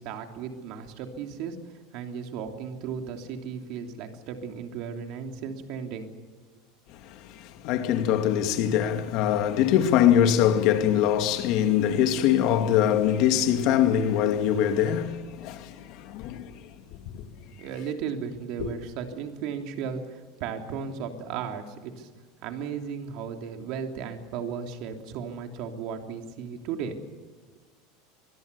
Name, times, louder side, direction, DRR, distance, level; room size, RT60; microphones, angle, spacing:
voice 1, 0.0-6.1 17.5-22.1 22.4-27.0, right 7 dB, 50° right, 3.1 m, -35 dB
voice 2, 6.9-16.8 17.1-17.2 18.6-18.7, left 10 dB, 45° left, 2.4 m, -23 dB
24.5 x 21.5 x 7.0 m
supercardioid pair, 165°, 0 cm